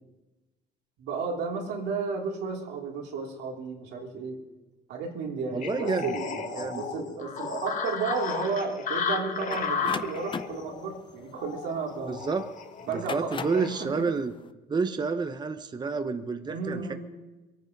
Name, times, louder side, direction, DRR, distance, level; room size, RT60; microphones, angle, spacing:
voice 1, 1.0-4.4 4.9-12.2 12.9-14.1 16.5-17.0, right 4 dB, 85° right, -1 dB, 3.3 m, -33 dB
voice 2, 5.5-6.1 6.6-6.9 12.1-12.4 12.9-14.3 14.7-16.9, right 4 dB, 25° right, 8 dB, 0.9 m, -29 dB
sound 1, 5.6-13.8, left 6 dB, 50° left, 1.6 m, -34 dB
sound 2, 9.5-12.2 12.8-13.7, left 6 dB, 30° left, 0.6 m, -38 dB
23.0 x 9.3 x 5.3 m, 1.1 s
cardioid pair, 110°, 17 cm